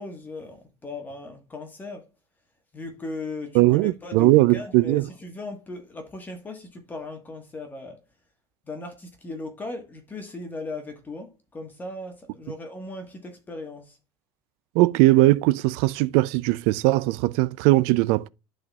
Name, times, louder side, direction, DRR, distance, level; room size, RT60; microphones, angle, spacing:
voice 1, 0.0-2.1 2.7-8.0 8.7-14.0, left 2 dB, 15° left, 1.4 m, -37 dB
voice 2, 3.5-5.1 14.8-18.3, right 19 dB, 80° right, 0.4 m, -19 dB
12.5 x 4.2 x 2.3 m
cardioid pair, 155°, 10 cm